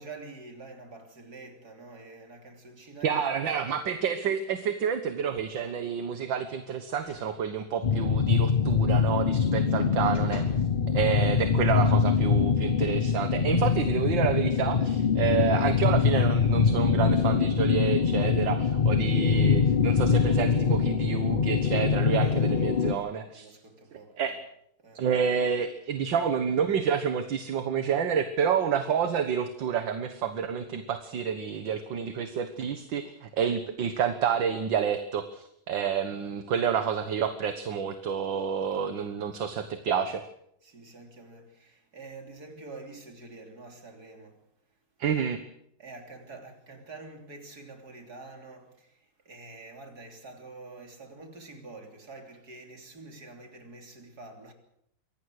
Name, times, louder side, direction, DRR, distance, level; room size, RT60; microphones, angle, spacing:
voice 1, 0.0-3.3 3.6-3.8 9.6-9.9 22.1-24.4 24.8-25.0 38.7-38.9 39.3-39.4 40.6-44.4 45.1-45.2 45.8-54.5, right 3 dB, 50° right, 3.9 m, -47 dB
voice 2, 3.0-10.4 10.9-23.5 24.2-24.4 25.0-40.2 45.0-45.4, right 7 dB, 70° right, 2.0 m, -29 dB
sound 1, 5.3-5.9 7.0-7.3 7.7-7.9 9.5-10.7 11.3-11.4, left 2 dB, 55° left, 4.1 m, -48 dB
sound 2, 7.8-22.9, left 6 dB, 40° left, 0.8 m, -24 dB
24.0 x 18.0 x 6.5 m
omnidirectional pair, 2.1 m